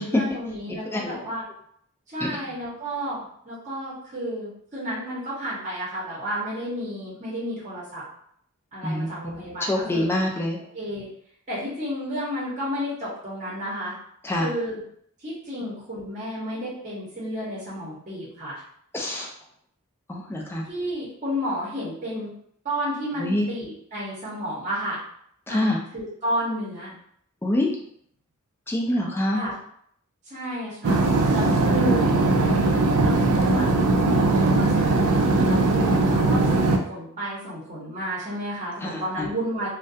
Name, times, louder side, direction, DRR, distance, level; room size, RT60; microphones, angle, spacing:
voice 1, 0.0-1.4 2.1-8.0 8.7-10.1 10.7-11.1 11.5-14.0 14.4-14.8 15.2-18.6 20.7-22.3 22.6-25.0 25.5-26.9 29.3-29.6 30.3-31.0 31.3-32.1 33.0-39.7, equal, 35° right, -7 dB, 0.7 m, -32 dB
voice 2, 0.9-1.2 2.2-2.3 8.8-10.6 14.2-14.5 18.9-19.3 20.1-20.7 23.2-23.5 25.5-25.8 27.4-27.7 28.7-29.4 31.8-31.9 38.8-39.3, left 1 dB, 10° left, -1 dB, 0.3 m, -26 dB
sound 1, 30.8-36.8, right 2 dB, 85° right, 0.4 m, -20 dB
2.3 x 2.1 x 2.6 m, 0.67 s
head